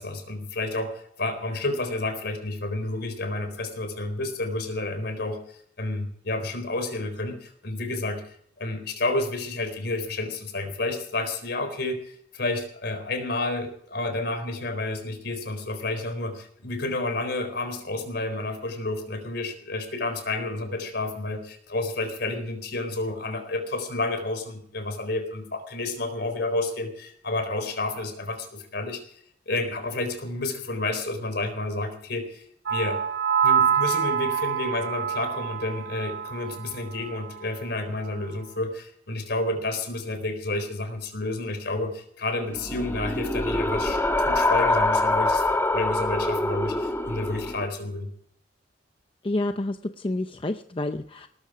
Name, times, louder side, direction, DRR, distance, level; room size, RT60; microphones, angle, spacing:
voice 1, 0.0-29.0 29.5-32.4 32.7-33.0 33.4-45.4 45.7-48.1, left 2 dB, 60° left, 7 dB, 4.2 m, -30 dB
sound 1, 32.7-36.7 37.0-37.3, right 8 dB, 75° right, 0.8 m, -26 dB
sound 2, 42.5-47.7, left 2 dB, 15° left, 1.3 m, -24 dB
voice 2, 49.2-51.3, left 2 dB, 30° left, 8 dB, 0.6 m, -29 dB
19.0 x 13.0 x 5.0 m, 0.64 s
head